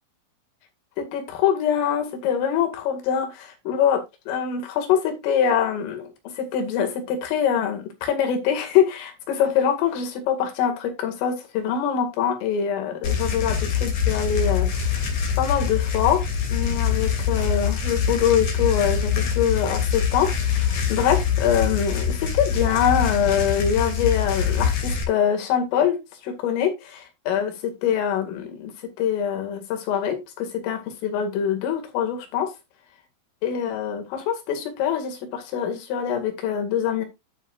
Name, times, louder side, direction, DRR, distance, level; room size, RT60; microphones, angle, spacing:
voice 1, 1.0-15.0 15.4-16.2 16.5-28.7 29.0-32.5 33.4-37.1, left 8 dB, 85° left, 4.7 m, -24 dB
sound 1, 13.0-25.0, left 7 dB, 45° left, 3.4 m, -24 dB
11.5 x 8.0 x 2.4 m
omnidirectional pair, 5.7 m